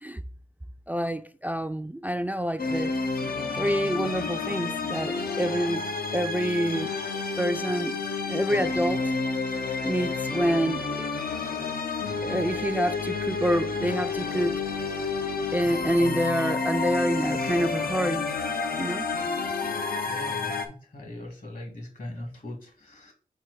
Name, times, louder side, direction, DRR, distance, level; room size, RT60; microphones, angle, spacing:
voice 1, 0.9-2.9 3.5-6.9 7.4-8.0 8.3-9.1 9.8-11.1 12.2-14.6 15.5-18.3 18.8-19.1, equal, 10° right, 0.3 m, -27 dB
sound 1, 2.6-20.7, left 4 dB, 85° left, 0.7 m, -30 dB
voice 2, 20.1-23.1, left 1 dB, 65° left, 1.8 m, -40 dB
4.5 x 4.5 x 4.7 m
wide cardioid pair, 85°, 15 cm